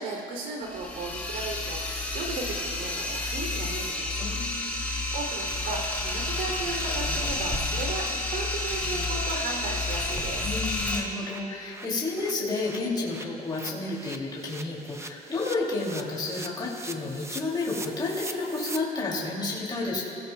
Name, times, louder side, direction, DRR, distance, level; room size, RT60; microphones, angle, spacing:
voice 1, 0.0-4.2 4.7-10.4, right 3 dB, 85° right, 0 dB, 3.3 m, -35 dB
sound 1, 0.6-11.0, left 2 dB, 10° left, 2.8 m, -30 dB
voice 2, 4.2-4.8 10.4-20.0, left 3 dB, 25° left, -4 dB, 3.0 m, -31 dB
sound 2, 5.8-5.9 6.2-6.3 6.7-6.8 7.1-7.2 7.6-7.7 8.0-8.2 8.5-8.6 8.9-18.8, right 3 dB, 15° right, 0.7 m, -44 dB
27.5 x 16.5 x 2.4 m, 2.6 s
cardioid pair, 110°, 17 cm